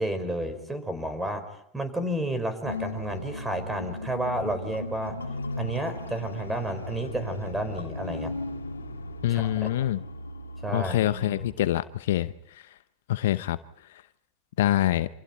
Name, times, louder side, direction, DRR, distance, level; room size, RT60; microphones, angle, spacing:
voice 1, 0.0-1.5 1.7-5.2 5.6-8.3 9.3-9.7 10.6-11.0, right 1 dB, 10° right, 10 dB, 4.8 m, -31 dB
sound 1, 2.6-11.5, left 2 dB, 90° left, 1.9 m, -37 dB
voice 2, 9.2-10.0 10.7-12.6 13.1-13.6 14.6-15.1, left 13 dB, 70° left, 14 dB, 0.8 m, -25 dB
28.5 x 27.0 x 4.4 m, 0.70 s
hypercardioid pair, 85°, 0 cm